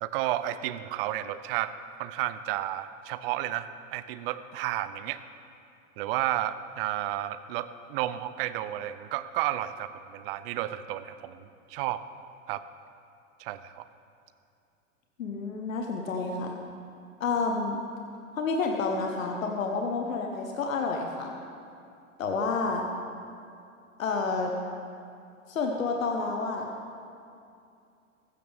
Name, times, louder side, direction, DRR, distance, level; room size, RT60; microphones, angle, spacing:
voice 1, 0.0-1.7 2.0-5.2 6.0-12.0 12.5-12.6 13.4-13.9, right 13 dB, 45° right, 14 dB, 0.7 m, -32 dB
voice 2, 15.2-16.5 17.2-17.8 18.4-21.3 22.2-22.8 24.0-24.5 25.5-26.7, left 4 dB, 75° left, 2 dB, 1.4 m, -29 dB
15.0 x 14.0 x 3.6 m, 2.5 s
figure-of-eight pair, 95°, 40 cm